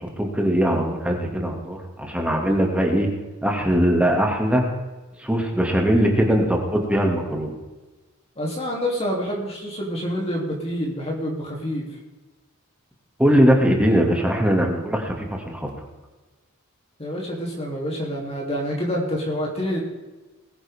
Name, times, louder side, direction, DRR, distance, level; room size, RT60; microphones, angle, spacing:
voice 1, 0.0-3.1 3.4-4.6 5.2-7.5 13.2-15.7, equal, 5° right, 1 dB, 2.3 m, -21 dB
voice 2, 8.4-11.9 17.0-19.8, equal, 30° left, -2 dB, 3.1 m, -27 dB
20.5 x 10.0 x 3.7 m, 1.2 s
head